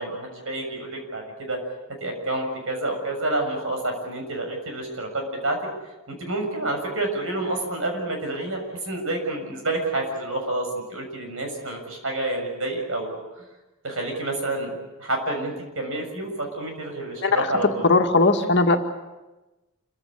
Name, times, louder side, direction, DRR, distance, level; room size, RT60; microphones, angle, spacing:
voice 1, 0.0-1.6 2.0-5.6 6.1-13.2 13.8-17.9, right 2 dB, 65° right, 3 dB, 7.0 m, -29 dB
voice 2, 17.2-17.5 17.8-18.8, left 3 dB, 55° left, 4 dB, 2.2 m, -18 dB
27.5 x 16.0 x 10.0 m, 1.1 s
head